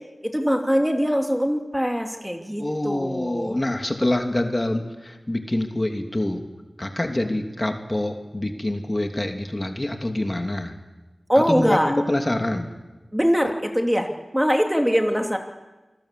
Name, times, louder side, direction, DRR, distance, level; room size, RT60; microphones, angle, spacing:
voice 1, 0.2-3.6 11.3-11.9 13.1-15.4, equal, 5° right, 3 dB, 2.7 m, -22 dB
voice 2, 2.6-6.4 6.8-10.7 11.4-12.7, left 1 dB, 30° left, 4 dB, 2.9 m, -26 dB
27.5 x 19.5 x 8.4 m, 1.2 s
wide cardioid pair, 55°, 0 cm